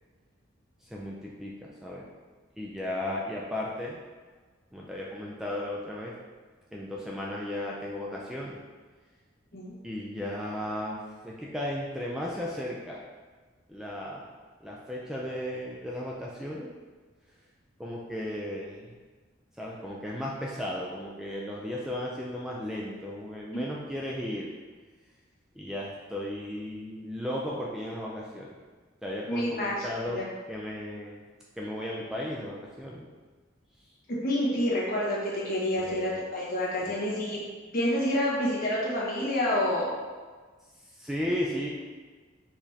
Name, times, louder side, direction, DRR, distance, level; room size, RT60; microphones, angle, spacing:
voice 1, 0.8-2.1 2.6-4.0 4.7-6.1 6.7-8.6 9.8-13.0 13.7-14.3 14.6-16.7 17.8-18.9 19.6-24.5 25.6-28.5 29.0-30.2 30.5-31.2 31.6-33.1 35.8-36.3 36.8-37.1 41.0-41.7, left 1 dB, 5° right, -4 dB, 0.4 m, -35 dB
voice 2, 29.3-30.2 34.1-37.4 37.7-39.9, left 1 dB, 50° left, -6 dB, 1.2 m, -28 dB
4.9 x 3.5 x 2.8 m, 1.4 s
head